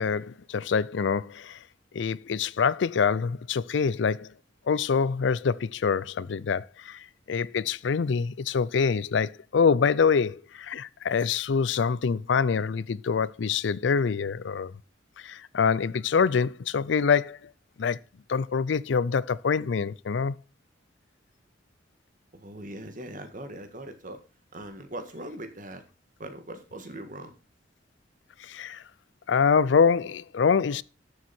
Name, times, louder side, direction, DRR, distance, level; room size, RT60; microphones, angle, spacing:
voice 1, 0.0-1.6 1.9-4.3 4.7-14.7 15.2-17.4 17.8-18.0 18.3-20.4 28.4-28.8 29.3-30.8, left 6 dB, 70° left, 0.4 m, -25 dB
voice 2, 22.3-24.2 24.5-25.8 26.2-27.3, right 1 dB, 45° right, 1.8 m, -40 dB
12.5 x 7.2 x 4.4 m
head